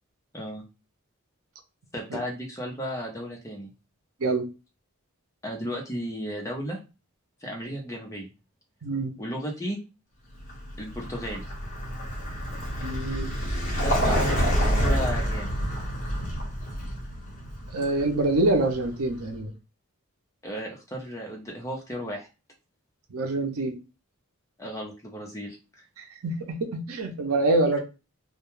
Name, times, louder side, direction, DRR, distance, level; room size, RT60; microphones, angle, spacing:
voice 1, 1.9-3.7 5.4-6.8 7.4-8.3 9.2-9.8 10.8-11.5 13.8-15.6 20.4-22.3 24.6-25.8 27.7-27.8, equal, 15° left, 0 dB, 0.6 m, -34 dB
voice 2, 8.8-9.1 12.8-13.3 17.7-19.5 23.1-23.8 26.0-27.8, right 2 dB, 75° right, 4 dB, 0.6 m, -26 dB
Vehicle, 10.4-19.2, equal, 35° left, 1.1 m, -28 dB
2.2 x 2.2 x 3.0 m, 0.29 s
head